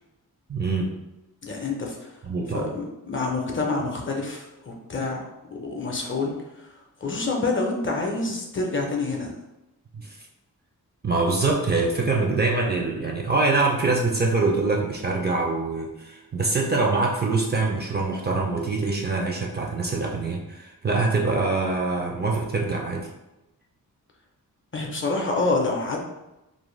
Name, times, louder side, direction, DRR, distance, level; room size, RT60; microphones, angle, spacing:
voice 1, 0.5-1.0 2.2-2.7 9.9-10.2 11.0-23.1, right 3 dB, 30° right, -1 dB, 0.4 m, -24 dB
voice 2, 1.4-2.1 2.5-5.2 5.6-6.7 7.0-9.3 24.7-26.0, left 3 dB, 35° left, 0 dB, 0.5 m, -27 dB
2.5 x 2.1 x 3.1 m, 0.95 s
wide cardioid pair, 95°, 35 cm